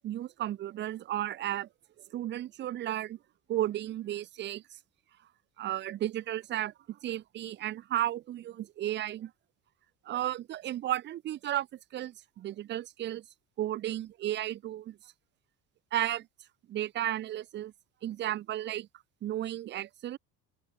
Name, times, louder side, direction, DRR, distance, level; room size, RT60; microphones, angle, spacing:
voice 1, 0.0-1.7 2.1-3.2 3.5-4.6 5.6-9.3 10.1-11.7 11.9-13.2 13.6-15.0 15.9-16.3 16.7-17.7 18.0-18.9 19.2-20.2, right 13 dB, 25° right, 0.4 m, -33 dB
open air
figure-of-eight pair, 60°, 48 cm